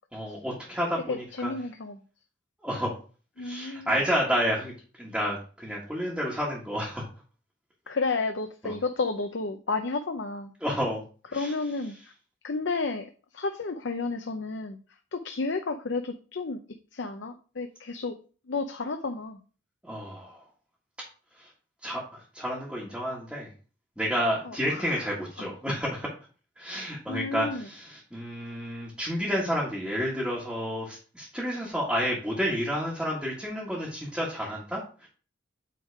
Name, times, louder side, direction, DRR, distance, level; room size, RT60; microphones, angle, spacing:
voice 1, 0.1-1.5 2.6-2.9 3.4-4.7 5.0-7.1 8.6-8.7 10.6-11.0 11.3-11.5 19.8-20.4 21.4-21.5 21.8-23.5 24.0-26.1 26.6-35.1, equal, 5° right, -6 dB, 1.6 m, -30 dB
voice 2, 1.1-2.0 3.4-3.9 7.9-10.5 11.3-12.1 12.4-14.8 15.1-16.6 16.9-18.2 18.5-19.4 24.4-25.5 27.1-27.7, left 3 dB, 65° left, 7 dB, 0.6 m, -32 dB
8.5 x 3.7 x 4.7 m, 0.38 s
head